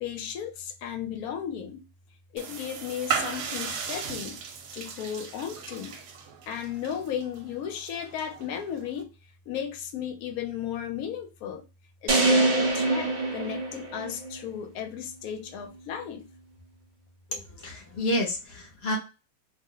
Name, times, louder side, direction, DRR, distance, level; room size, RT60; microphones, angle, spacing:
voice 1, 0.0-1.9 2.3-4.4 4.7-6.0 6.5-9.1 9.5-11.6 12.0-16.3, left 9 dB, 70° left, 1.0 m, -35 dB
sound 1, 2.4-9.0, right 7 dB, 85° right, 1.2 m, -36 dB
sound 2, 12.1-14.4, right 2 dB, 70° right, 0.4 m, -24 dB
voice 2, 17.3-19.0, left 1 dB, 50° left, 0.8 m, -30 dB
2.7 x 2.1 x 3.6 m
omnidirectional pair, 1.7 m